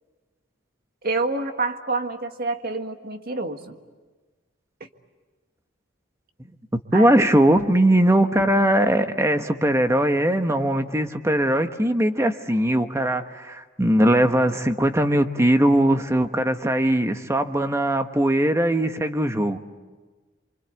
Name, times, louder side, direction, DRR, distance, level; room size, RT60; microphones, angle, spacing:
voice 1, 1.0-3.8 6.9-7.1, right 3 dB, 50° right, 6 dB, 1.7 m, -27 dB
voice 2, 6.9-19.6, right 1 dB, 15° right, 7 dB, 1.2 m, -20 dB
28.5 x 25.0 x 8.3 m, 1.3 s
head